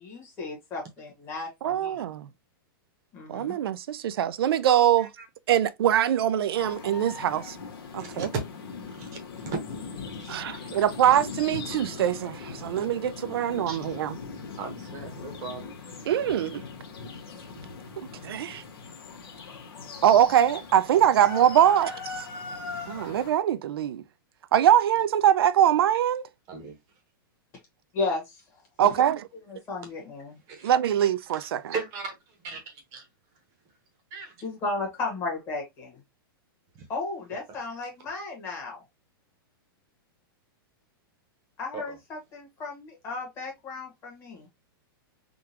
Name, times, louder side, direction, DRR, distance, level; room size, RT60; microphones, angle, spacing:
voice 1, 0.0-2.0 3.1-3.6 27.9-28.4 28.8-28.9 29.5-30.4 34.4-36.0 36.9-38.8 41.6-44.5, left 3 dB, 20° left, 1.2 m, -34 dB
voice 2, 1.6-2.3 3.3-5.1 5.5-7.6 7.9-8.3 10.3-14.2 16.1-16.6 18.0-18.6 20.0-22.3 22.9-24.0 24.5-26.2 28.8-29.3 30.6-31.7, right 10 dB, 85° right, 0.4 m, -23 dB
sound 1, 6.6-23.3, left 5 dB, 80° left, 1.3 m, -40 dB
voice 3, 8.0-8.4 8.7-9.6 10.2-10.8 13.7-14.2 14.6-15.7 26.5-26.8 30.5-30.7 31.0-33.1 34.1-34.4 36.7-36.9 37.5-37.6 41.7-42.0, right 5 dB, 25° right, 0.8 m, -38 dB
3.7 x 2.3 x 2.7 m
supercardioid pair, 165°, 12 cm